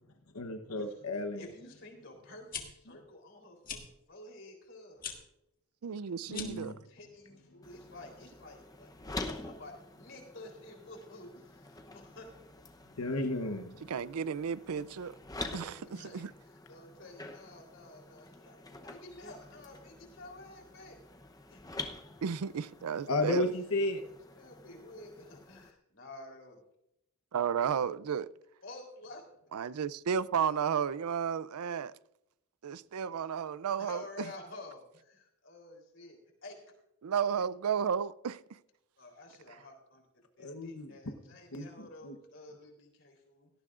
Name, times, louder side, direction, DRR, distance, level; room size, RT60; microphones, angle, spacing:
voice 1, 0.3-1.5 6.3-6.8 13.0-13.8 23.1-24.0 40.4-40.9 41.5-42.2, left 2 dB, 90° left, 1.0 m, -33 dB
voice 2, 1.4-5.0 6.7-12.3 14.7-14.8 15.5-16.2 16.7-21.0 21.5-21.6 24.4-26.6 28.6-29.2 33.8-36.6 39.0-40.1 40.4-43.5, left 2 dB, 55° left, 3.5 m, -51 dB
sound 1, 2.3-2.6 3.6-3.8 5.0-5.2 6.3-6.7, left 7 dB, 40° left, 1.6 m, -40 dB
voice 3, 5.8-6.7 13.9-15.2 15.5-16.3 22.2-23.5 27.3-28.3 29.5-31.9 32.6-34.3 37.0-38.4, right 7 dB, 90° right, 0.4 m, -33 dB
sound 2, 7.6-25.7, left 2 dB, 15° left, 0.8 m, -47 dB
17.5 x 13.5 x 2.5 m
head